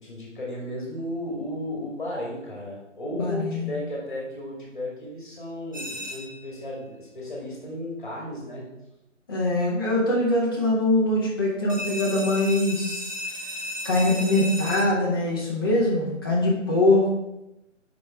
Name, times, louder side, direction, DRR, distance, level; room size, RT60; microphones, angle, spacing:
voice 1, 0.0-8.7, left 1 dB, 40° left, -3 dB, 1.9 m, -34 dB
voice 2, 3.2-3.7 9.3-13.1 13.8-17.1, left 1 dB, 20° left, -5 dB, 1.2 m, -23 dB
sound 1, 5.7-6.5 11.7-14.8, left 1 dB, 70° right, 1.8 m, -34 dB
7.5 x 5.3 x 3.7 m, 0.92 s
figure-of-eight pair, 155°, 38 cm